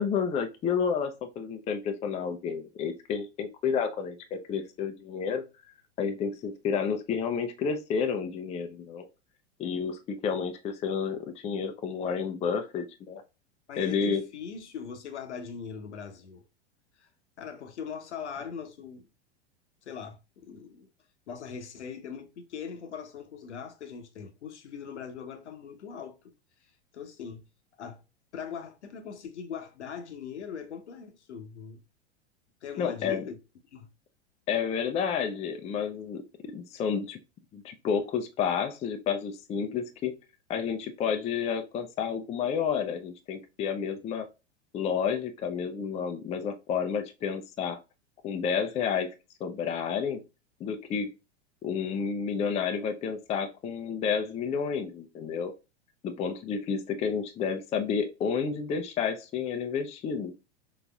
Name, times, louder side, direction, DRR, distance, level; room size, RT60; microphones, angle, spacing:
voice 1, 0.0-5.4 6.0-9.1 9.6-13.2 13.8-14.2 32.8-33.2 34.5-37.2 37.5-40.1 40.5-44.3 44.7-47.8 48.2-49.1 49.4-50.2 50.6-51.1 51.6-55.5 56.0-60.3, left 6 dB, 20° left, 0.4 m, -30 dB
voice 2, 13.7-16.4 17.0-17.1 17.4-19.1 19.8-20.9 21.3-26.3 26.9-27.4 27.8-28.0 28.3-31.8 32.6-33.3 33.7-33.9 46.3-46.5, left 6 dB, 80° left, 0.9 m, -41 dB
4.8 x 3.9 x 2.3 m
hypercardioid pair, 95°, 34 cm